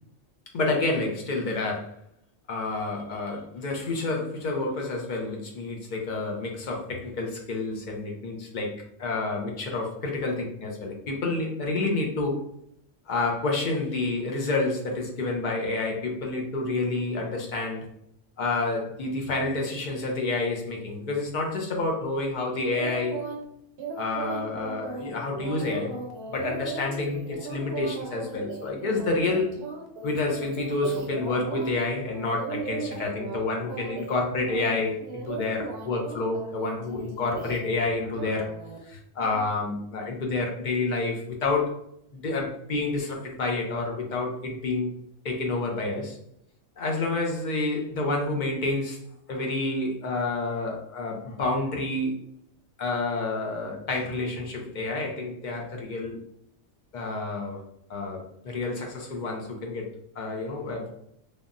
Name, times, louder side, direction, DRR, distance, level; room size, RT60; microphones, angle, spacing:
voice 1, 0.5-1.9 2.5-12.4 13.1-17.9 18.4-23.2 24.0-29.5 30.0-38.5 38.8-41.7 42.1-44.9 45.2-46.2 46.8-49.0 49.3-52.2 52.8-56.2 56.9-57.6 57.9-59.9 60.2-60.9, left 3 dB, 60° left, 0 dB, 0.5 m, -29 dB
sound 1, 22.7-23.4 23.8-31.7 32.1-33.4 33.7-34.2 34.5-37.8 38.1-38.8 39.2-39.4, right 4 dB, 60° right, 0.7 m, -37 dB
3.4 x 2.1 x 2.4 m, 0.74 s
omnidirectional pair, 1.4 m